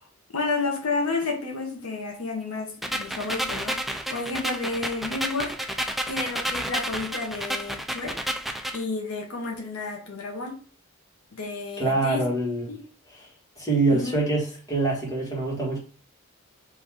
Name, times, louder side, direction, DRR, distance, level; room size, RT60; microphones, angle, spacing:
voice 1, 0.3-8.1 8.7-10.5 11.3-12.2 12.7-12.8 13.9-14.2, left 3 dB, 85° left, 1.2 m, -31 dB
sound 1, 2.8-8.8, equal, ahead, 0.3 m, -31 dB
voice 2, 11.8-12.7 13.1-13.3 13.6-15.8, right 2 dB, 15° left, 1.6 m, -25 dB
3.6 x 3.0 x 4.6 m
head